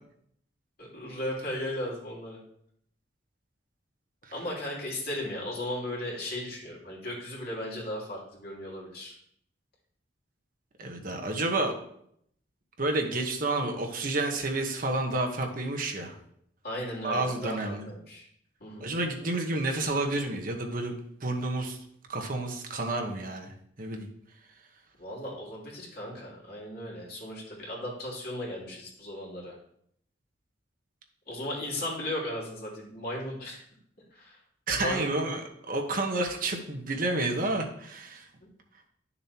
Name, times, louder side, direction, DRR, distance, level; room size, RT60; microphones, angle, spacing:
voice 1, 0.8-2.4 4.3-9.1 16.6-18.3 18.6-18.9 25.0-29.5 31.3-33.6 34.1-34.4 34.7-35.3, left 1 dB, 55° left, -4 dB, 3.1 m, -36 dB
voice 2, 10.8-11.7 12.8-16.1 17.0-17.9 18.8-20.9 21.2-21.8 22.1-24.1 34.7-38.3, right 2 dB, 45° right, 3 dB, 1.2 m, -30 dB
12.0 x 7.0 x 3.0 m, 0.69 s
head